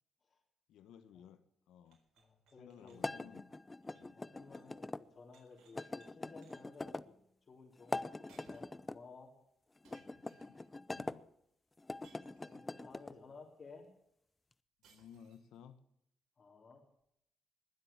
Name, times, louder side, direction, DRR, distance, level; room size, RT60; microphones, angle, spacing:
voice 1, 0.7-1.4 1.7-2.0 2.6-4.2 9.8-10.6 10.9-11.3 14.8-15.8, left 8 dB, 85° left, 11 dB, 1.3 m, -58 dB
sound 1, 1.8-4.8 5.0-6.1 6.4-6.8 7.9-8.0 8.3-8.9 9.8-10.7 12.0-12.9 14.8-15.6, right 6 dB, 85° right, 4.1 m, -69 dB
voice 2, 2.2-3.0 4.1-4.8 5.1-7.1 7.5-9.3 12.4-13.9 16.4-16.8, left 4 dB, 45° left, -2 dB, 3.7 m, -56 dB
sound 2, 3.0-5.0 5.8-7.1 7.8-9.0 9.8-11.2 11.8-13.2, left 2 dB, 20° left, 0.7 m, -43 dB
20.5 x 8.0 x 8.7 m, 0.75 s
cardioid pair, 85°, 0 cm